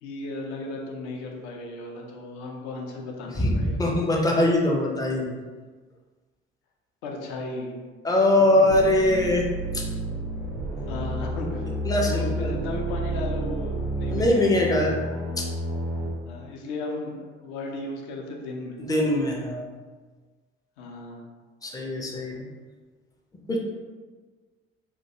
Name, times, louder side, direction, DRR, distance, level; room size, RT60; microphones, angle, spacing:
voice 1, 0.0-3.8 7.0-7.8 8.6-8.7 10.9-11.7 12.1-14.6 16.2-18.8 20.8-21.2, left 2 dB, 60° left, 0 dB, 0.6 m, -35 dB
voice 2, 3.4-5.4 8.0-9.4 9.7-9.8 11.8-12.5 14.1-15.0 15.4-15.5 18.8-19.7 21.6-22.5 23.5-23.6, left 1 dB, 10° left, -1 dB, 0.4 m, -22 dB
sound 1, 8.7-16.1, right 1 dB, 80° right, 0.6 m, -30 dB
2.4 x 2.2 x 2.7 m, 1.4 s
figure-of-eight pair, 50°, 33 cm